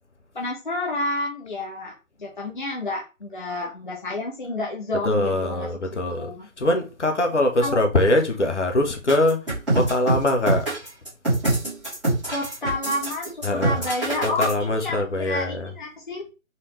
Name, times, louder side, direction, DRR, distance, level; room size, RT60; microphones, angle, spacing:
voice 1, 0.3-1.9 2.2-6.5 7.6-7.8 12.3-16.2, left 2 dB, 35° left, 0.8 m, -30 dB
voice 2, 4.9-6.3 6.6-9.4 9.7-10.7 13.4-13.8 14.2-15.7, left 1 dB, 55° left, 1.2 m, -22 dB
sound 1, 9.1-14.5, right 2 dB, 5° right, 1.8 m, -24 dB
4.2 x 3.4 x 3.2 m
figure-of-eight pair, 155°, 41 cm